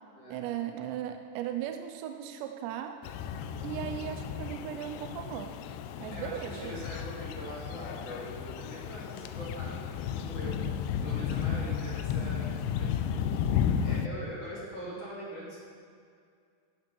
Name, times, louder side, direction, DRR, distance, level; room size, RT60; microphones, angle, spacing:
voice 1, 0.3-3.0 3.6-5.6 6.0-6.8, right 10 dB, 85° right, 6 dB, 2.7 m, -37 dB
sound 1, 3.0-14.1, left 8 dB, 90° left, 2.3 m, -33 dB
voice 2, 6.1-10.7 11.0-13.5 13.8-15.6, equal, 35° left, -7 dB, 3.4 m, -43 dB
17.5 x 6.1 x 6.1 m, 2.2 s
omnidirectional pair, 5.3 m